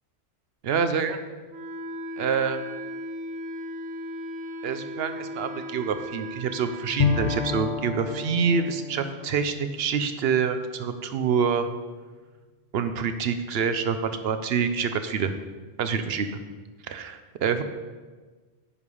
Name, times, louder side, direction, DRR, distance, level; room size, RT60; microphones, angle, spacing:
voice 1, 0.6-1.2 2.2-2.6 4.6-11.7 12.7-15.3 15.8-16.4 16.9-17.6, right 6 dB, 65° right, 9 dB, 0.9 m, -26 dB
Wind instrument woodwind instrument, 1.5-7.7, equal, 90° right, 1.1 m, -37 dB
Bowed string instrument, 7.0-10.7, left 6 dB, 85° left, 1.0 m, -30 dB
9.9 x 5.0 x 5.4 m, 1.4 s
omnidirectional pair, 1.2 m